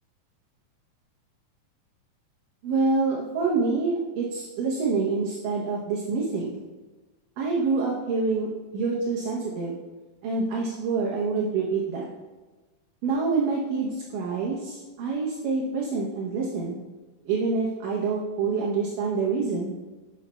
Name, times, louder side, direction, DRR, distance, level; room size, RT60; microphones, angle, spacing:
voice 1, 2.6-6.6 7.4-9.8 10.2-12.1 13.0-16.8 17.3-19.7, right 4 dB, 70° right, -3 dB, 2.1 m, -26 dB
12.5 x 6.2 x 2.2 m, 1.2 s
omnidirectional pair, 4.6 m